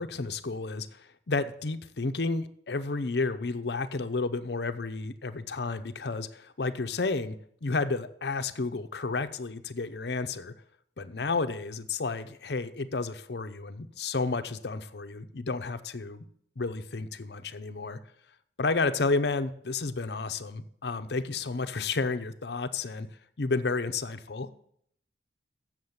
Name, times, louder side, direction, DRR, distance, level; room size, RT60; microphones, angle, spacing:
voice 1, 0.0-7.3 7.6-10.5 11.0-16.2 16.6-18.0 18.6-23.1 23.4-24.5, left 3 dB, 60° left, 10 dB, 0.7 m, -31 dB
7.5 x 7.3 x 7.9 m, 0.67 s
head